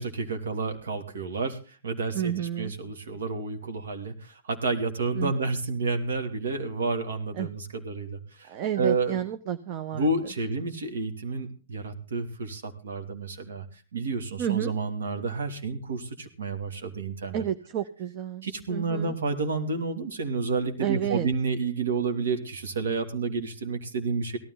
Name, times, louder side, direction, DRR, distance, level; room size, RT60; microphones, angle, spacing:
voice 1, 0.0-9.2 9.9-13.6 13.9-17.5 18.4-24.4, right 3 dB, 75° right, 6 dB, 2.8 m, -30 dB
voice 2, 2.1-2.7 5.1-5.3 7.4-7.5 8.5-10.1 14.4-14.7 17.3-19.1 20.8-21.3, right 10 dB, 40° right, 11 dB, 0.9 m, -30 dB
17.5 x 13.0 x 4.0 m, 0.37 s
hypercardioid pair, 115°, 0 cm